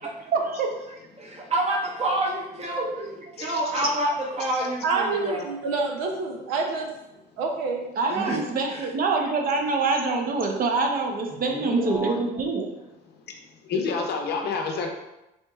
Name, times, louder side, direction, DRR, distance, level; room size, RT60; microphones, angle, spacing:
voice 1, 0.0-0.8 8.0-12.7, right 3 dB, 50° right, 3 dB, 0.7 m, -25 dB
voice 2, 1.2-5.5 8.1-8.4 8.7-8.8 11.5-12.2, right 1 dB, 35° right, -1 dB, 1.0 m, -28 dB
voice 3, 3.4-3.9 4.5-4.6 13.3-13.4 13.6-14.9, left 4 dB, 60° left, 2 dB, 0.7 m, -29 dB
voice 4, 4.8-6.9 7.4-7.9, right 4 dB, 90° right, 2 dB, 0.6 m, -27 dB
4.3 x 2.9 x 2.3 m, 0.93 s
supercardioid pair, 75°, 19 cm